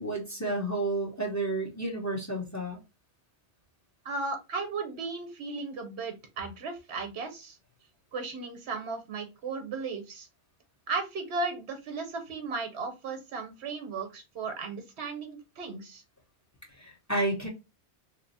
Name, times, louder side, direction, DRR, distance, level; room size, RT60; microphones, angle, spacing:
voice 1, 0.0-2.8 16.8-17.5, right 2 dB, 15° left, 0.8 m, -31 dB
voice 2, 4.0-7.6 8.1-10.3 10.9-16.0, right 4 dB, 75° right, 1.0 m, -35 dB
3.0 x 2.0 x 3.9 m
omnidirectional pair, 1.1 m